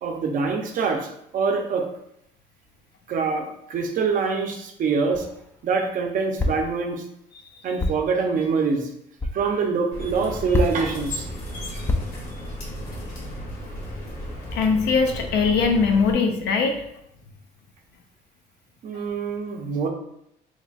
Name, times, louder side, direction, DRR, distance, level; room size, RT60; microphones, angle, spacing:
voice 1, 0.0-1.9 3.1-5.3 5.6-7.0 7.6-8.9 9.3-11.3 18.8-19.9, right 5 dB, 55° right, 3 dB, 0.7 m, -25 dB
sound 1, 5.1-5.5 6.4-6.8 7.8-8.1 9.2-9.4 10.5-11.0 11.9-12.3, left 2 dB, 15° left, 0.4 m, -26 dB
sound 2, 9.9-16.1, equal, 65° left, 1.2 m, -34 dB
voice 2, 14.5-16.8, left 5 dB, 80° left, 4 dB, 0.6 m, -21 dB
2.9 x 2.2 x 4.0 m, 0.76 s
cardioid pair, 110°, 17 cm